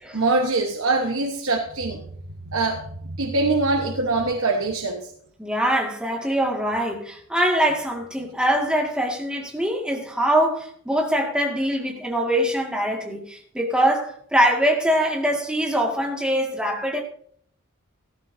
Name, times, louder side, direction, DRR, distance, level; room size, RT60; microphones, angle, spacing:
voice 1, 0.1-2.0 2.5-2.8 3.2-5.0, right 3 dB, 70° right, 2 dB, 1.3 m, -23 dB
voice 2, 5.4-17.0, equal, 5° right, 0 dB, 2.0 m, -23 dB
16.0 x 14.0 x 2.7 m, 0.63 s
head